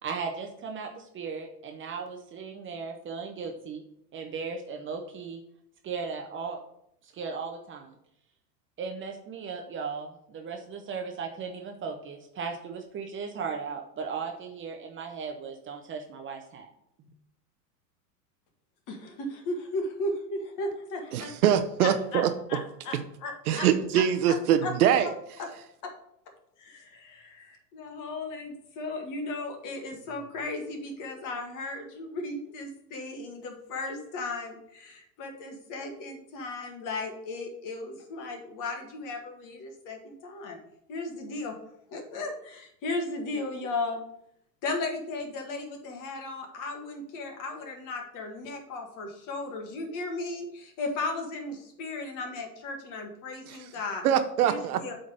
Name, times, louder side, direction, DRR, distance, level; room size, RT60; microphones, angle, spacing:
voice 1, 0.0-3.8 4.1-5.4 5.8-6.6 7.0-7.9 8.8-16.7 17.0-17.1, right 5 dB, 25° right, 4 dB, 0.8 m, -37 dB
voice 2, 18.9-21.3 21.8-22.2 22.5-23.7 23.9-24.4 24.6-24.7 26.6-40.6 40.9-41.5 41.9-44.0 44.6-54.0 54.4-54.9, left 2 dB, 40° left, 3 dB, 1.8 m, -36 dB
voice 3, 21.1-22.3 23.5-25.1 53.5-53.6 54.0-54.8, right 9 dB, 60° right, 9 dB, 0.8 m, -23 dB
8.3 x 3.9 x 5.2 m, 0.74 s
figure-of-eight pair, 90°, 50 cm